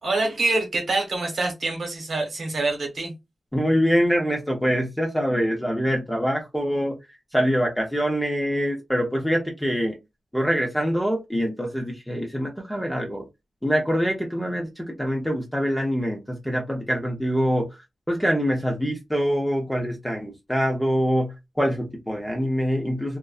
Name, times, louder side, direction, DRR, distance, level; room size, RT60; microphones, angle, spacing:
voice 1, 0.0-3.1, right 2 dB, 70° right, 1.1 m, -25 dB
voice 2, 3.5-7.0 7.3-9.9 10.3-13.3 13.6-17.7 18.1-23.2, equal, 5° left, 0.6 m, -24 dB
2.5 x 2.1 x 2.3 m
wide cardioid pair, 80°, 0 cm